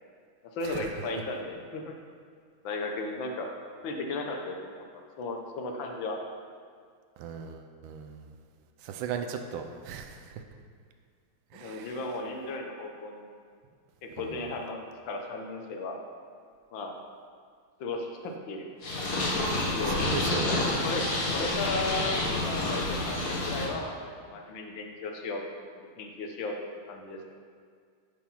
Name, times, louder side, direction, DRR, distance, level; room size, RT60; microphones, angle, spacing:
voice 1, 0.4-1.9 2.6-3.5 3.8-4.8 5.2-6.2 11.6-13.3 14.0-14.8 15.1-16.0 16.7-16.9 17.8-18.7 19.5-20.1 20.6-24.0 24.2-25.4 26.0-26.5 26.9-27.3, left 3 dB, 65° left, 2 dB, 1.7 m, -35 dB
voice 2, 7.2-8.3 8.8-10.4 11.5-12.0 14.2-14.4 19.9-20.7, right 6 dB, 75° right, 5 dB, 1.4 m, -37 dB
Purr, 18.8-23.7, left 2 dB, 50° left, 1.9 m, -29 dB
11.5 x 4.9 x 5.6 m, 2.1 s
omnidirectional pair, 2.3 m